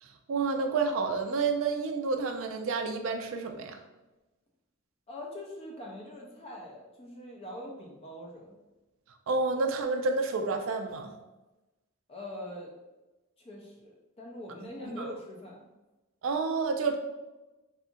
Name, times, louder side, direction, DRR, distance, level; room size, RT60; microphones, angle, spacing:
voice 1, 0.0-3.8 9.3-11.1 15.0-15.1 16.2-17.0, right 4 dB, 65° right, 5 dB, 0.3 m, -29 dB
voice 2, 5.1-8.6 12.1-12.7 13.4-15.7, left 1 dB, 30° left, -1 dB, 0.4 m, -43 dB
2.7 x 2.4 x 2.5 m, 1.1 s
head